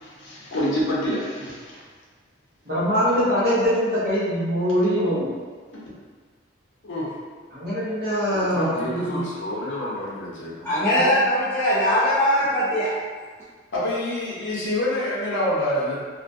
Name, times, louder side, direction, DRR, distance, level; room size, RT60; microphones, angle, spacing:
voice 1, 0.0-1.8 5.7-5.8 6.9-7.1 8.3-10.7 13.7-16.0, left 1 dB, 65° left, -6 dB, 0.6 m, -27 dB
voice 2, 2.6-5.4 7.5-9.2 10.9-11.1, equal, 50° right, -10 dB, 0.9 m, -23 dB
voice 3, 10.6-12.9, equal, 10° left, -12 dB, 0.3 m, -20 dB
2.2 x 2.1 x 2.5 m, 1.5 s
head